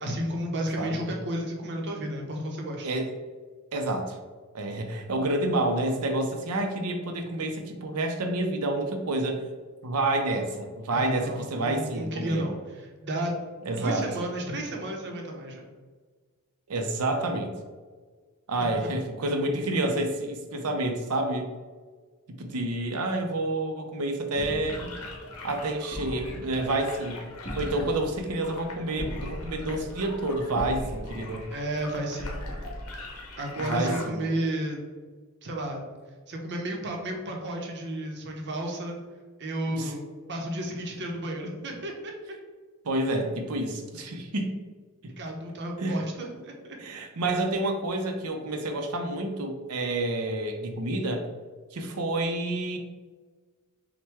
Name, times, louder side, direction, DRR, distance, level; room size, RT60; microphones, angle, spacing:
voice 1, 0.0-2.9 10.9-13.3 13.8-15.7 18.5-18.9 31.5-32.4 33.4-34.8 35.4-35.8 36.3-39.0 39.4-42.1 45.2-46.8, right 1 dB, 50° right, 2 dB, 0.7 m, -32 dB
voice 2, 3.7-4.2 4.5-9.4 9.8-12.5 13.7-14.1 16.7-17.5 18.5-21.5 22.4-24.9 25.4-27.3 27.5-31.5 33.6-34.3 39.7-39.9 42.8-44.6 45.0-45.1 45.8-46.0 46.8-51.3 51.7-52.8, right 2 dB, 85° right, 5 dB, 0.6 m, -29 dB
sound 1, 24.3-33.8, equal, 35° left, 1.2 m, -40 dB
sound 2, 24.7-34.1, left 2 dB, 75° left, 0.9 m, -43 dB
5.7 x 2.2 x 3.4 m, 1.4 s
head